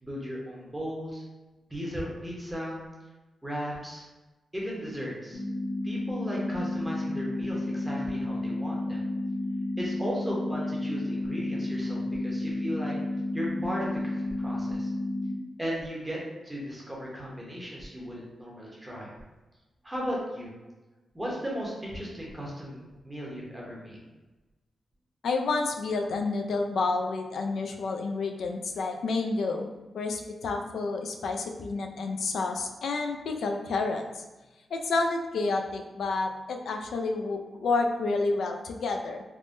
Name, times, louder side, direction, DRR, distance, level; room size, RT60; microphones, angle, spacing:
voice 1, 0.0-1.2 1.7-2.8 3.4-4.0 4.5-5.4 5.8-9.0 9.8-12.9 13.3-14.9 15.6-19.1 19.8-20.5 21.1-24.0, equal, 15° right, -4 dB, 0.7 m, -36 dB
sound 1, 5.3-15.3, left 1 dB, 60° left, 0.8 m, -31 dB
voice 2, 25.2-29.7 29.9-34.2 34.7-39.2, left 3 dB, 80° left, 3 dB, 0.3 m, -29 dB
3.4 x 2.1 x 2.5 m, 1.1 s
wide cardioid pair, 125°, 0 cm